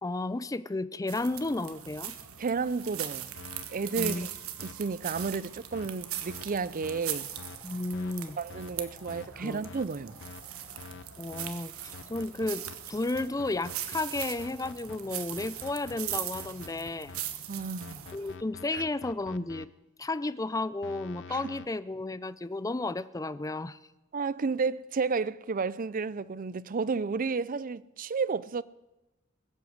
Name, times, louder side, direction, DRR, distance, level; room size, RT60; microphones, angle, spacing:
voice 1, 0.0-2.1 4.0-4.3 7.6-8.4 9.4-9.7 11.2-17.1 18.1-19.7 20.0-23.8, left 2 dB, 15° left, 0.5 m, -33 dB
sound 1, 1.1-18.3, right 11 dB, 85° right, 1.3 m, -40 dB
voice 2, 2.4-3.3 3.7-4.3 4.6-7.3 8.4-10.2 17.5-18.1 18.7-18.8 21.3-21.4 24.1-28.6, right 4 dB, 40° right, 0.5 m, -32 dB
sound 2, 3.3-3.7 4.0-4.2 4.6-4.7 5.1-5.3 5.7-5.9 6.3-6.4 6.8-7.0 7.4-7.6 7.9-8.1 8.5-8.7 9.1-9.3 9.6-9.9 10.2-10.4 10.8-11.0 11.3-11.5 11.9-12.7 13.1-15.0 15.4-17.2 17.8-19.6 20.8-21.7, left 5 dB, 60° left, 0.7 m, -46 dB
sound 3, 6.0-19.1, left 2 dB, 45° left, 4.7 m, -59 dB
20.5 x 8.2 x 7.9 m
head